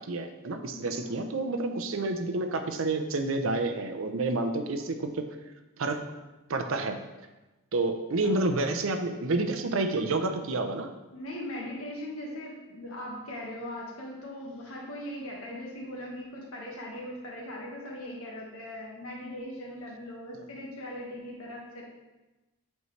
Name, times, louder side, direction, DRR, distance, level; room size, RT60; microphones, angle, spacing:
voice 1, 0.0-5.3 5.8-6.0 6.5-7.0 7.7-10.9, right 2 dB, 65° right, 7 dB, 0.6 m, -29 dB
voice 2, 0.7-1.2 8.2-8.4 11.1-21.8, left 1 dB, 80° left, -2 dB, 1.5 m, -40 dB
8.1 x 4.6 x 3.2 m, 1.1 s
head